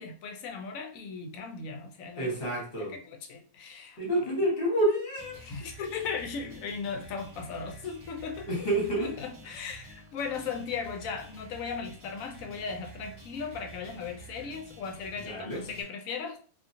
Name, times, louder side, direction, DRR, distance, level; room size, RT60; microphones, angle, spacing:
voice 1, 0.0-2.4 2.8-4.3 5.4-8.5 9.0-16.4, left 5 dB, 70° left, 0.9 m, -37 dB
voice 2, 2.2-2.9 4.0-5.4 8.5-9.1 15.2-15.6, right 1 dB, 40° left, 1.3 m, -28 dB
sound 1, 5.2-15.8, right 2 dB, 20° right, 1.3 m, -49 dB
2.7 x 2.7 x 2.5 m
omnidirectional pair, 1.5 m